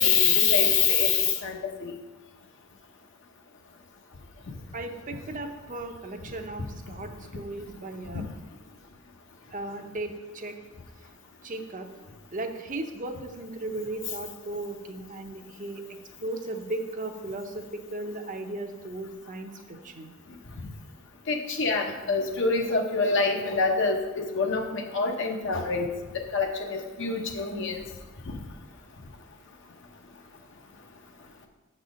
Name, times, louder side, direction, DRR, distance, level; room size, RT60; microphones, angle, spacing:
voice 1, 0.0-1.9 21.3-25.9 26.3-27.8, left 5 dB, 60° left, 3 dB, 0.9 m, -25 dB
voice 2, 4.7-8.2 9.5-10.6 11.4-11.9 12.3-20.1, right 2 dB, 40° right, 5 dB, 0.7 m, -36 dB
7.1 x 4.2 x 6.2 m, 1.2 s
head